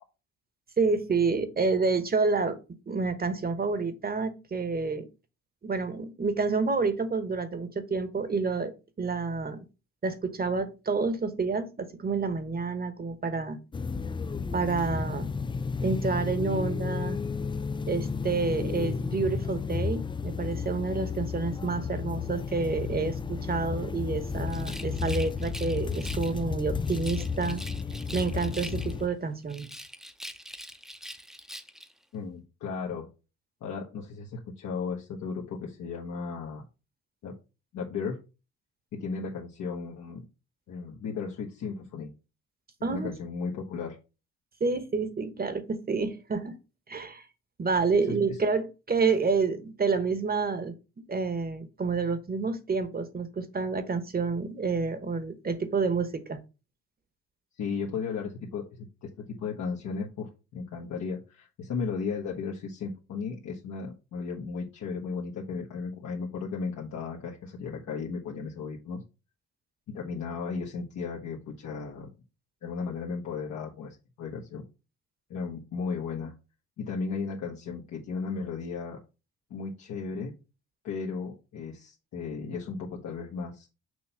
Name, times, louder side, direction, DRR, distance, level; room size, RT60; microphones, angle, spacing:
voice 1, 0.8-2.6 2.9-5.1 5.6-8.7 9.0-9.6 10.0-13.6 14.5-15.3 15.8-17.2 17.9-27.6 28.1-29.7 42.8-43.1 44.6-46.5 46.9-47.3 47.6-50.7 51.1-56.4, right 4 dB, 30° right, 1.1 m, -29 dB
sound 1, 13.7-29.1, left 5 dB, 15° left, 0.3 m, -32 dB
Rattle, 24.5-26.4 26.9-29.1 29.5-31.9, equal, ahead, 0.7 m, -43 dB
voice 2, 32.1-33.1 33.6-36.6 37.2-37.3 37.7-38.2 38.9-40.2 40.7-42.1 42.8-44.0 48.1-48.4 57.6-69.0 69.9-72.1 72.6-74.6 75.3-76.3 76.8-79.0 79.5-80.3 80.8-83.7, left 5 dB, 70° left, 1.2 m, -35 dB
6.2 x 2.9 x 5.6 m
cardioid pair, 90°, 30 cm